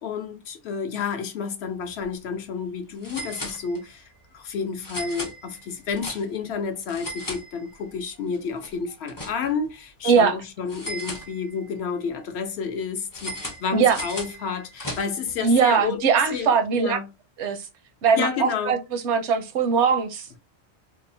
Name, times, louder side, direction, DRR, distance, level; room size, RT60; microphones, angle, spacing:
voice 1, 0.0-4.0 4.3-16.0 16.3-17.1 18.1-18.8, left 6 dB, 70° left, 0.8 m, -30 dB
sound 1, 1.8-2.0 2.3-2.4 3.0-4.1 4.8-6.5 6.8-8.0 8.3-9.7 10.7-11.8 13.1-15.4, left 1 dB, 25° left, 0.4 m, -37 dB
voice 2, 15.4-17.0 17.4-17.7 18.0-20.4, right 6 dB, 80° right, 0.9 m, -21 dB
2.8 x 2.0 x 2.5 m
omnidirectional pair, 1.2 m